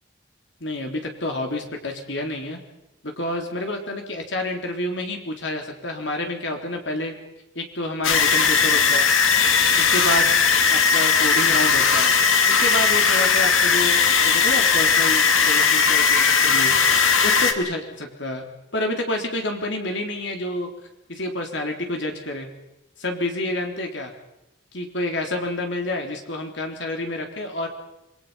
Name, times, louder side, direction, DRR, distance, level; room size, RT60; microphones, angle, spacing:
voice 1, 0.6-2.6 3.0-7.1 7.6-9.1 9.8-10.3 10.7-12.1 12.5-16.7 17.2-18.5 18.7-20.7 21.1-22.5 23.0-24.1 24.7-27.7, left 1 dB, 65° left, 3 dB, 3.6 m, -28 dB
sound 1, 8.0-17.5, left 5 dB, 85° left, 2.2 m, -18 dB
27.0 x 21.0 x 5.8 m, 0.90 s
head